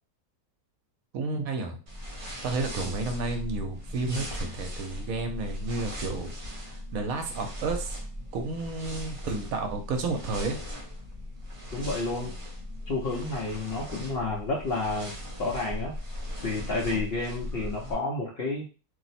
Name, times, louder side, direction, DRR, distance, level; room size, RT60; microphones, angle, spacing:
voice 1, 1.1-1.8 2.4-6.3 6.9-8.0 8.3-10.6, right 3 dB, 70° right, 5 dB, 1.0 m, -31 dB
sound 1, 1.9-17.9, left 1 dB, 30° right, 0.6 m, -38 dB
voice 2, 11.7-12.3 12.9-15.1 15.4-15.9 16.4-18.7, left 3 dB, 65° left, -2 dB, 0.6 m, -30 dB
2.7 x 2.0 x 4.0 m, 0.34 s
omnidirectional pair, 1.6 m